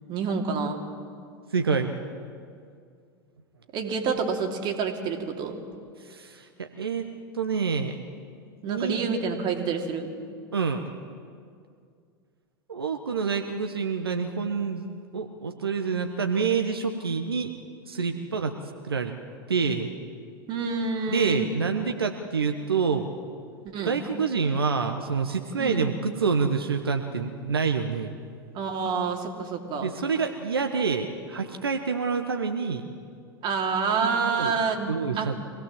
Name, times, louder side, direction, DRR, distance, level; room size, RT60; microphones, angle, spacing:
voice 1, 0.1-0.8 3.7-5.6 8.6-10.1 20.5-21.4 23.6-24.0 25.6-25.8 28.5-29.9 33.4-35.3, right 5 dB, 40° right, 3 dB, 3.0 m, -28 dB
voice 2, 1.5-2.0 6.0-7.1 7.3-8.0 8.7-9.1 10.5-11.0 12.7-14.9 15.1-17.5 17.9-18.6 18.8-19.1 19.5-19.9 21.1-23.1 23.8-28.2 29.8-32.8 34.0-34.5 34.9-35.4, right 5 dB, 80° right, 5 dB, 1.2 m, -27 dB
25.0 x 18.0 x 7.6 m, 2.2 s
figure-of-eight pair, 90°, 12 cm